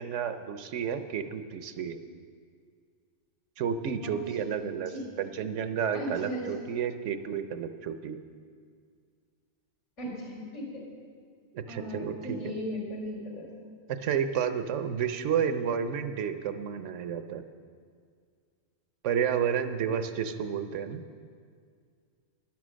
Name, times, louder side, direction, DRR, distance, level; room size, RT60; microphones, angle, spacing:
voice 1, 0.0-2.0 3.6-8.2 11.5-12.4 13.9-17.4 19.0-21.0, right 7 dB, 90° right, 10 dB, 1.1 m, -31 dB
voice 2, 4.5-5.1 5.9-6.5 10.0-10.8 11.7-13.6, equal, 80° left, -4 dB, 4.3 m, -37 dB
12.0 x 11.0 x 6.3 m, 2.1 s
omnidirectional pair, 1.2 m